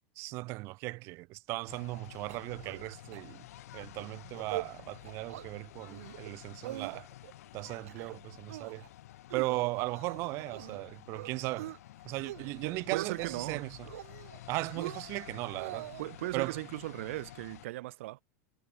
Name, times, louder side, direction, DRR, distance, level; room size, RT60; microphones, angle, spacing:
voice 1, 0.2-3.4 3.7-7.1 7.5-8.8 9.3-11.7 12.0-13.9 14.5-15.9 16.3-16.6, right 23 dB, 35° right, 1.4 m, -37 dB
sound 1, 1.7-17.7, left 14 dB, 85° left, 2.0 m, -51 dB
sound 2, 2.3-2.9 3.1-3.2 3.6-3.8 4.2-4.7 5.0-5.5 5.9-6.3 6.6-7.3 7.7-8.2 8.5-8.9 9.3-10.8 11.1-11.8 12.1-12.5 12.8-13.4 13.8-14.4 14.8-16.1, right 15 dB, 75° right, 1.8 m, -43 dB
voice 2, 12.6-13.7 16.0-18.2, right 18 dB, 60° right, 1.0 m, -38 dB
supercardioid pair, 180°, 8 cm